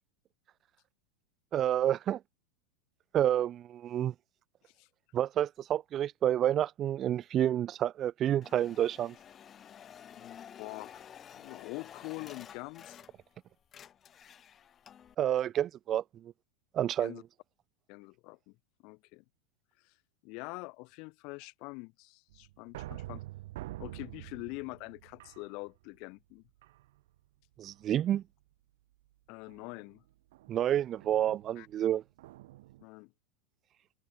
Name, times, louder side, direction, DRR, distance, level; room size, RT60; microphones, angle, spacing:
voice 1, 1.5-2.2 3.1-4.1 5.1-9.2 15.2-16.3 16.7-17.2 27.6-28.2 30.5-32.0, right 11 dB, 35° right, 0.4 m, -29 dB
sound 1, 8.4-13.4 13.6-15.1, left 9 dB, 30° left, 5.1 m, -51 dB
voice 2, 10.1-11.0 11.3-13.0 17.0-17.2 17.9-18.6 18.8-19.2 19.8-19.9 20.2-23.2 23.8-26.4 29.3-30.0 31.6-31.7 32.8-33.1, left 28 dB, 50° left, 0.8 m, -44 dB
sound 2, 22.3-26.0 26.6-27.2 27.6-28.0 29.5-32.9, right 17 dB, 60° right, 2.4 m, -47 dB
open air
figure-of-eight pair, 85°, 0 cm